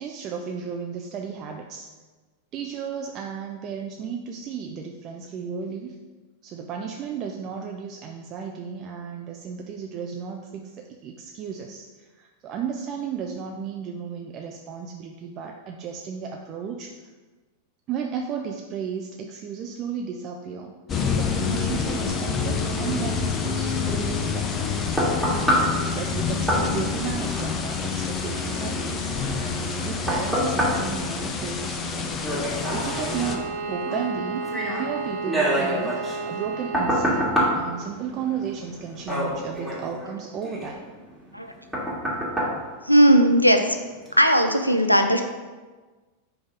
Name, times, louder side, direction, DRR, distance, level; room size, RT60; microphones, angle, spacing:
voice 1, 0.0-1.9 2.5-6.0 6.4-17.0 17.9-24.9 25.6-29.2 29.8-32.1 32.6-37.3 37.6-40.9, right 6 dB, 35° right, 2 dB, 0.4 m, -34 dB
sound 1, 20.9-33.4, left 5 dB, 25° left, 0.6 m, -27 dB
sound 2, 24.3-43.6 44.1-44.2, equal, ahead, 1.8 m, -29 dB
Bowed string instrument, 32.4-37.4, right 4 dB, 65° right, 1.0 m, -33 dB
voice 2, 42.8-43.8 44.2-45.2, equal, 90° left, 6 dB, 0.5 m, -17 dB
5.1 x 3.5 x 5.3 m, 1.3 s
figure-of-eight pair, 90°, 0 cm